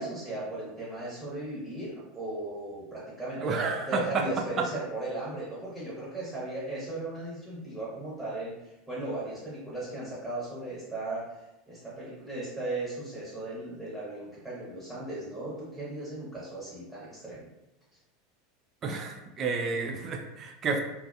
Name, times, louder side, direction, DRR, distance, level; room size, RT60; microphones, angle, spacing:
voice 1, 0.0-17.5, right 2 dB, 10° right, -8 dB, 1.0 m, -37 dB
voice 2, 3.4-4.2 18.8-20.8, right 4 dB, 35° right, 3 dB, 0.4 m, -30 dB
2.3 x 2.2 x 2.6 m, 0.93 s
figure-of-eight pair, 80°, 0 cm